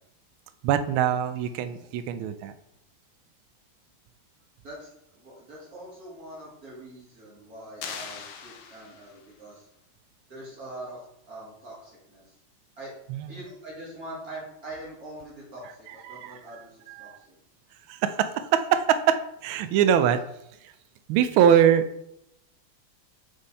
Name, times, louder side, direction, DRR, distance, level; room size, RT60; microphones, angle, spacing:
voice 1, 0.6-2.5 13.1-13.4 15.9-16.4 16.9-17.2 17.9-20.2 21.1-21.8, right 9 dB, 80° right, 10 dB, 1.4 m, -23 dB
voice 2, 5.1-9.7 10.3-11.0 11.3-12.3 12.8-12.9 13.3-17.4, right 1 dB, 45° right, -5 dB, 2.3 m, -43 dB
sound 1, 7.8-9.3, left 6 dB, 75° left, 1.5 m, -40 dB
5.5 x 5.2 x 4.1 m, 0.79 s
omnidirectional pair, 2.3 m